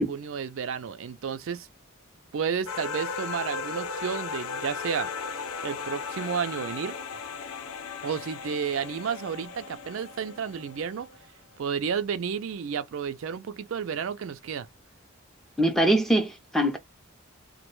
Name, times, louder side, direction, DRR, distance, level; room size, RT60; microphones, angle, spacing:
voice 1, 0.0-1.7 2.3-5.1 5.6-6.9 8.0-11.1 11.6-14.7, right 7 dB, 70° right, 0.4 m, -31 dB
sound 1, 2.7-11.3, left 5 dB, 80° left, 0.5 m, -36 dB
voice 2, 15.6-16.8, right 1 dB, ahead, 0.5 m, -23 dB
2.2 x 2.1 x 3.0 m
head